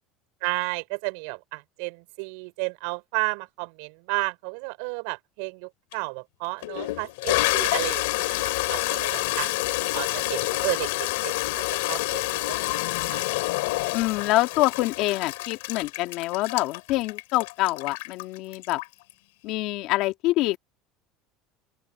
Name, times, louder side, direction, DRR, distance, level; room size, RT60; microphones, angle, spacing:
voice 1, 0.4-9.5 9.9-12.8 13.1-13.3, right 31 dB, 75° right, 4.4 m, -33 dB
Toilet flush, 5.9-6.0 6.6-19.1, left 22 dB, 85° left, 2.8 m, -28 dB
voice 2, 13.9-18.8 19.4-20.6, left 18 dB, 65° left, 1.9 m, -25 dB
open air
supercardioid pair, 115°, 0 cm